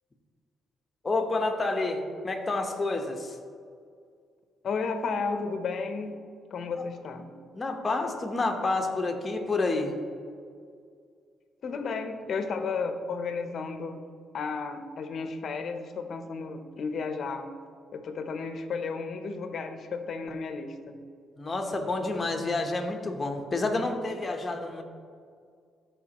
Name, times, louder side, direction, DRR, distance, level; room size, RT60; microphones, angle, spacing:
voice 1, 1.0-3.4 7.5-9.9 21.4-24.8, left 2 dB, 30° left, 4 dB, 1.0 m, -29 dB
voice 2, 4.6-6.2 6.5-7.3 11.6-14.0 14.3-17.5 17.9-21.0, left 4 dB, 55° left, 7 dB, 0.7 m, -33 dB
13.0 x 5.0 x 3.0 m, 2.2 s
cardioid pair, 90°, 0 cm